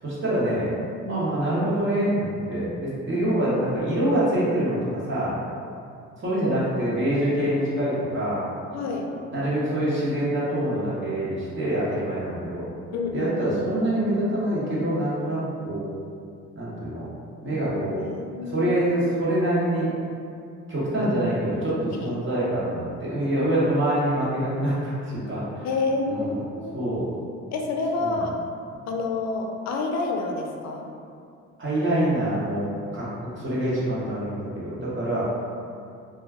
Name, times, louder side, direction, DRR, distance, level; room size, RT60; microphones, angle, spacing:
voice 1, 0.0-0.7 1.1-5.3 6.2-8.4 9.3-12.7 13.1-15.9 16.5-17.1 17.4-18.0 18.4-19.9 20.7-25.7 26.1-26.4 26.7-27.1 28.0-28.2 31.6-32.7 32.9-35.3, right 1 dB, 40° right, -9 dB, 1.0 m, -25 dB
voice 2, 8.7-9.1 12.9-13.6 18.0-18.7 21.0-21.1 22.0-22.3 25.6-26.8 27.5-28.3 28.9-30.9, left 3 dB, 60° left, 2 dB, 0.5 m, -29 dB
2.3 x 2.2 x 3.4 m, 2.4 s
cardioid pair, 90°, 30 cm